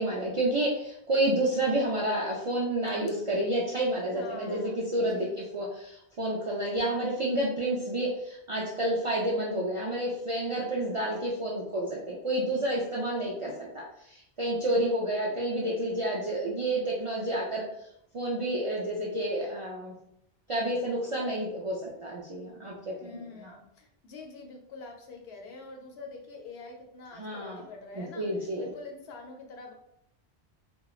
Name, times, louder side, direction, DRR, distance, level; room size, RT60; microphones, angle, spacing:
voice 1, 0.0-17.6 18.1-19.9 20.5-23.6 27.1-27.6 27.9-28.7, right 1 dB, 60° right, -4 dB, 0.3 m, -30 dB
voice 2, 4.1-5.5 23.0-28.3 28.6-29.7, left 3 dB, 90° left, 2 dB, 0.9 m, -45 dB
2.9 x 2.2 x 2.3 m, 0.78 s
omnidirectional pair, 1.0 m